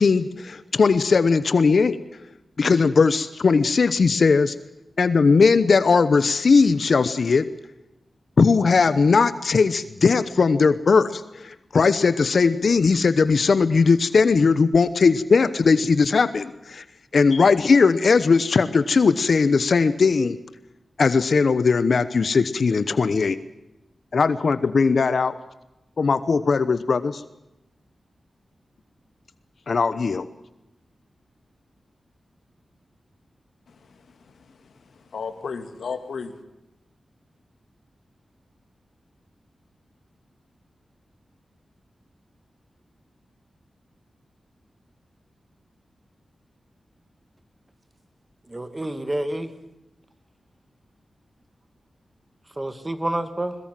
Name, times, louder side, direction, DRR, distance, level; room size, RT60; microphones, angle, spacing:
voice 1, 0.0-2.0 2.6-4.5 5.0-7.4 8.4-16.8 17.1-20.4 21.0-23.4 24.1-25.4 26.0-27.2 29.7-30.3, left 4 dB, 60° left, 13 dB, 1.0 m, -19 dB
voice 2, 33.7-36.4, left 5 dB, 85° left, 9 dB, 2.2 m, -35 dB
voice 3, 48.5-49.5 52.6-53.6, right 1 dB, 20° right, 10 dB, 2.2 m, -28 dB
21.5 x 21.5 x 7.6 m, 0.93 s
wide cardioid pair, 100°, 0 cm